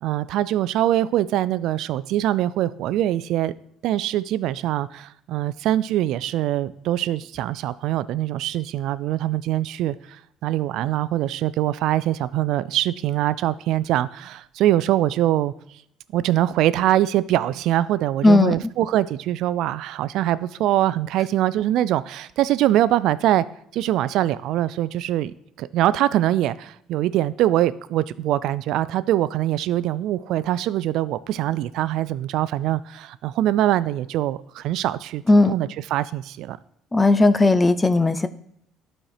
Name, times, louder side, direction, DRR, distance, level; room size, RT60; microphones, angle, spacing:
voice 1, 0.0-3.5 3.8-15.5 16.1-23.4 23.7-36.6, right 13 dB, 65° right, 0.4 m, -23 dB
voice 2, 18.2-18.5 35.3-35.5 36.9-38.3, left 2 dB, 15° left, 0.4 m, -16 dB
11.5 x 4.4 x 4.8 m
cardioid pair, 135°, 0 cm